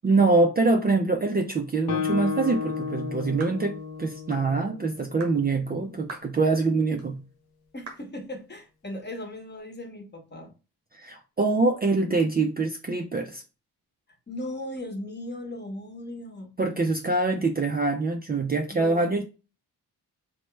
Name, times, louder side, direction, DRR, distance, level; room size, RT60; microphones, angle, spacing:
voice 1, 0.0-7.2 10.9-13.4 16.6-19.2, right 3 dB, 25° right, 0.4 m, -24 dB
Guitar, 1.9-5.5, left 6 dB, 65° left, 0.6 m, -32 dB
sound 1, 3.4-3.6 4.3-4.5 5.2-5.4 6.1-6.3 7.0-7.1 7.9-8.1, right 3 dB, 90° right, 0.8 m, -41 dB
voice 2, 7.7-10.5 14.3-16.5 18.7-19.1, left 1 dB, 25° left, 1.0 m, -37 dB
3.0 x 2.2 x 3.1 m
supercardioid pair, 45°, 41 cm